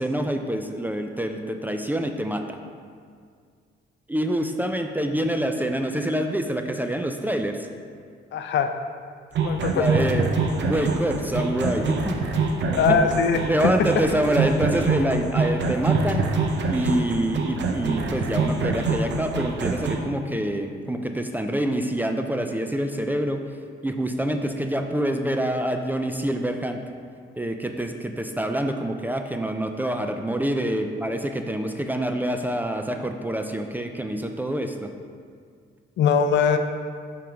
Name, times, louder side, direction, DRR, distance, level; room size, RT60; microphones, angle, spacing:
voice 1, 0.0-2.6 4.1-7.7 9.7-12.2 12.9-13.0 13.5-16.2 16.7-23.4 23.8-26.8 27.4-34.9, right 1 dB, 10° right, 5 dB, 0.4 m, -26 dB
voice 2, 8.3-8.7 9.4-9.9 12.7-13.4 36.0-36.6, left 6 dB, 65° left, 7 dB, 0.5 m, -21 dB
sound 1, 9.4-20.0, right 4 dB, 65° right, 0.7 m, -25 dB
5.5 x 3.7 x 5.0 m, 2.1 s
cardioid pair, 90°, 20 cm